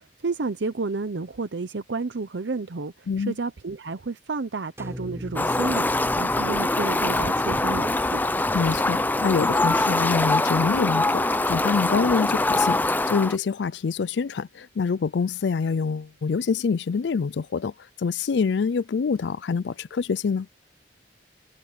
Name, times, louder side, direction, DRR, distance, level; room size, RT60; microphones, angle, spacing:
voice 1, 0.0-8.2, right 3 dB, 80° right, 0.7 m, -31 dB
sound 1, 4.8-9.0, equal, 15° right, 6.1 m, -41 dB
Fowl, 5.4-13.4, left 2 dB, 10° left, 0.6 m, -23 dB
voice 2, 8.5-17.7 18.0-20.5, left 5 dB, 75° left, 0.4 m, -26 dB
head